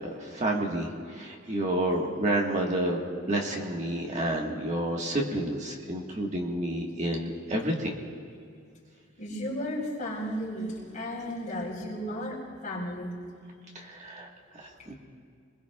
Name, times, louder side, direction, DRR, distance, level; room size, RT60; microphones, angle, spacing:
voice 1, 0.0-0.9 1.2-3.0 3.3-7.9 13.7-14.3 14.6-15.0, right 1 dB, 35° right, -1 dB, 1.5 m, -29 dB
voice 2, 9.2-13.2, equal, 40° left, -4 dB, 4.1 m, -34 dB
26.0 x 21.0 x 2.4 m, 2.3 s
head